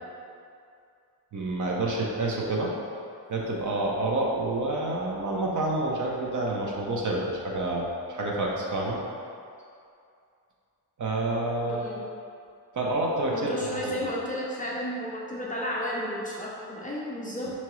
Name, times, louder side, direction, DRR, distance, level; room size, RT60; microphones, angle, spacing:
voice 1, 1.3-2.7 3.3-9.0 11.0-11.9 12.7-13.9, right 2 dB, 50° right, -2 dB, 0.6 m, -28 dB
voice 2, 11.6-12.0 13.3-17.5, equal, 20° left, -5 dB, 0.4 m, -33 dB
4.7 x 2.9 x 3.0 m, 2.4 s
wide cardioid pair, 150°, 40 cm